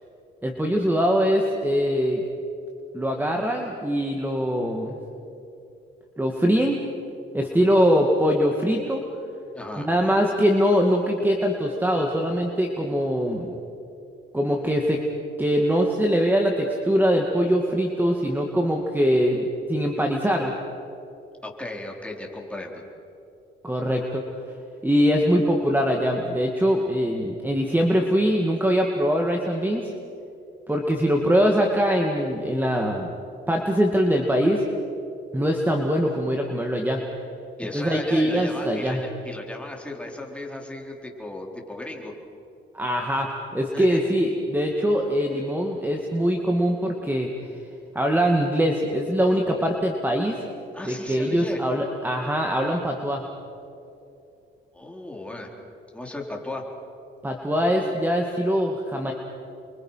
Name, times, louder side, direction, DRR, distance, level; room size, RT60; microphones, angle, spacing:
voice 1, 0.4-2.2 2.9-5.0 6.2-6.8 7.3-9.0 9.8-13.5 14.3-15.0 15.4-20.5 23.6-24.2 24.8-29.9 30.7-33.1 33.5-34.6 35.3-37.0 37.7-39.0 42.7-47.3 47.9-50.4 50.9-53.2 57.2-59.1, equal, 10° right, 2 dB, 2.3 m, -22 dB
voice 2, 9.5-9.9 21.4-22.8 37.6-42.1 43.7-44.1 50.7-51.6 54.7-55.5 55.9-56.6, left 2 dB, 5° left, 0 dB, 4.4 m, -35 dB
29.5 x 24.0 x 5.9 m, 2.7 s
cardioid pair, 90°, 20 cm